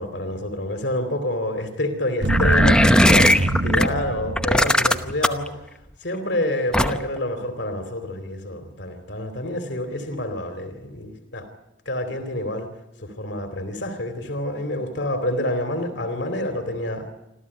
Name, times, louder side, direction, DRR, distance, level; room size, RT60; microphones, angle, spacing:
voice 1, 0.0-5.6 6.0-11.5 11.8-12.7 13.0-17.1, left 1 dB, 60° left, 7 dB, 2.7 m, -28 dB
sound 1, 2.2-5.1 5.4-5.5, right 2 dB, 70° right, 1.0 m, -24 dB
sound 2, 2.3-3.9 4.4-5.5 6.7-7.2, left 1 dB, 5° left, 0.9 m, -17 dB
26.0 x 15.0 x 9.7 m, 0.91 s
head